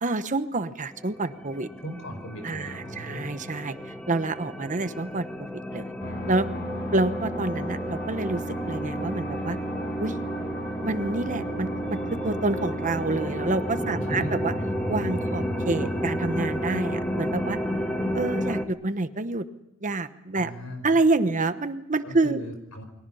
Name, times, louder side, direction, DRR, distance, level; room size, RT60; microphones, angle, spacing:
voice 1, 0.0-1.7 2.4-3.8 4.1-5.9 6.3-6.5 6.9-8.4 8.7-9.6 10.0-10.2 10.8-14.5 14.9-17.6 18.1-19.4 19.8-20.5 20.8-22.4, right 2 dB, 35° right, 11 dB, 1.0 m, -27 dB
sound 1, 0.9-18.7, equal, 5° left, 1.4 m, -32 dB
voice 2, 1.8-3.3 14.1-14.3 20.3-21.0 22.0-22.8, equal, 75° left, 7 dB, 5.0 m, -37 dB
sound 2, 6.0-18.2, right 1 dB, 55° left, 4.0 m, -35 dB
29.0 x 22.5 x 5.6 m, 0.95 s
head